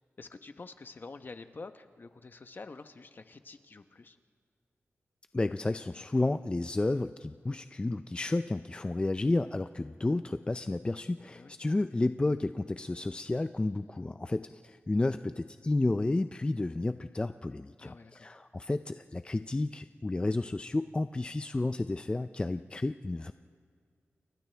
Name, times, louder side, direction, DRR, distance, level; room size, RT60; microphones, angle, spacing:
voice 1, 0.2-4.2 11.3-11.5 17.8-18.3, left 3 dB, 45° left, 8 dB, 1.0 m, -48 dB
voice 2, 5.3-23.3, left 2 dB, 20° left, 10 dB, 0.4 m, -31 dB
30.0 x 28.5 x 3.4 m, 2.2 s
wide cardioid pair, 80°, 5 cm